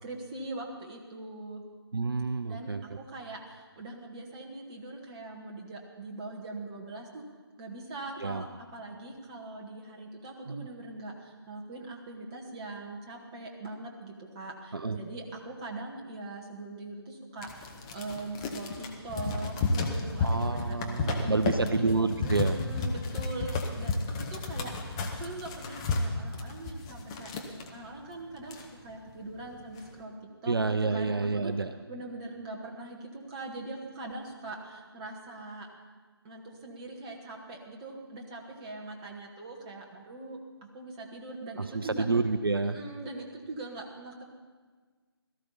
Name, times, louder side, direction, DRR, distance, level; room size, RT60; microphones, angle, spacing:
voice 1, 0.0-1.6 2.4-7.2 7.6-21.8 22.2-27.3 27.7-30.1 30.4-31.5 31.9-35.7 36.2-40.4 40.7-42.0 42.6-44.2, right 2 dB, 15° right, -1 dB, 1.3 m, -42 dB
voice 2, 1.9-2.8 8.2-8.5 10.5-10.7 14.7-15.0 20.2-22.6 30.5-31.7 41.6-42.8, right 3 dB, 60° right, 10 dB, 0.6 m, -29 dB
sound 1, 17.4-27.7 28.1-28.2 28.4-29.1 29.5-29.9, left 3 dB, 10° left, 0.7 m, -32 dB
17.5 x 13.5 x 4.1 m, 1.5 s
figure-of-eight pair, 150°, 14 cm